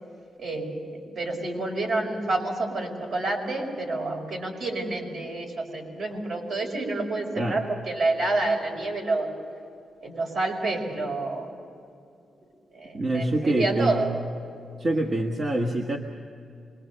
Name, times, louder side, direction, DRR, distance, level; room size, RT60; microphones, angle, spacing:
voice 1, 0.4-9.3 10.0-11.5 12.7-14.1 14.9-15.0, right 2 dB, 60° right, 1 dB, 5.5 m, -28 dB
voice 2, 12.9-14.1 14.8-16.0, right 1 dB, 40° right, 1 dB, 1.5 m, -25 dB
26.0 x 22.5 x 6.8 m, 2.5 s
wide cardioid pair, 150°, 0 cm